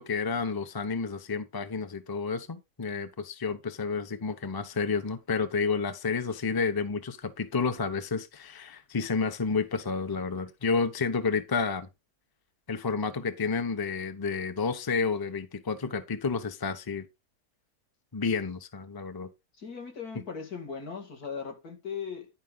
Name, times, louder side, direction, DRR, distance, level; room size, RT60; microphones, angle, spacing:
voice 1, 0.0-11.9 12.7-17.1 18.1-19.3, left 4 dB, 20° left, 0.7 m, -30 dB
voice 2, 19.6-22.3, left 6 dB, 60° left, 2.8 m, -38 dB
11.0 x 5.3 x 3.9 m
omnidirectional pair, 1.8 m